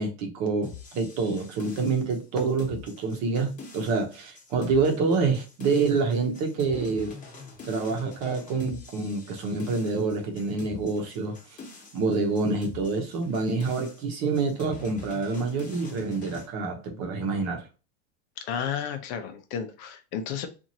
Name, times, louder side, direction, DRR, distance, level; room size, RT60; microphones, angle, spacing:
voice 1, 0.0-7.2 7.6-11.6 11.9-17.7, right 4 dB, 50° right, 0.9 m, -27 dB
sound 1, 0.6-16.5, left 4 dB, 25° left, 0.9 m, -45 dB
voice 2, 18.4-20.5, left 8 dB, 55° left, 0.7 m, -32 dB
2.8 x 2.6 x 2.7 m
supercardioid pair, 130°, 34 cm